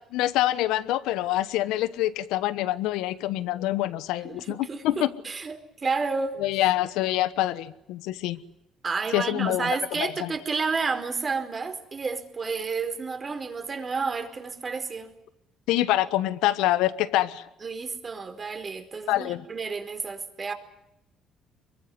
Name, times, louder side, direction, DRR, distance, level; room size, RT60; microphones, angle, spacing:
voice 1, 0.1-5.1 6.4-8.4 9.1-10.3 15.7-17.4 19.1-19.4, left 15 dB, 80° left, 1.2 m, -26 dB
voice 2, 4.2-6.4 8.8-15.1 17.6-20.5, right 4 dB, 40° right, 4.7 m, -31 dB
25.0 x 22.5 x 9.9 m
supercardioid pair, 60°, 0 cm